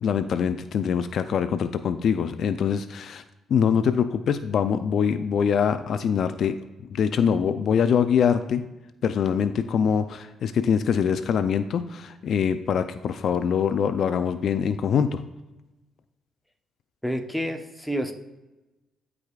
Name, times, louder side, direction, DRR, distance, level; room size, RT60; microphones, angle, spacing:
voice 1, 0.0-3.2 3.5-6.5 6.9-8.6 9.0-15.2, left 7 dB, 65° left, 10 dB, 0.4 m, -24 dB
voice 2, 17.0-18.1, equal, ahead, 4 dB, 0.9 m, -29 dB
13.5 x 4.9 x 2.4 m, 1.0 s
cardioid pair, 90°, 0 cm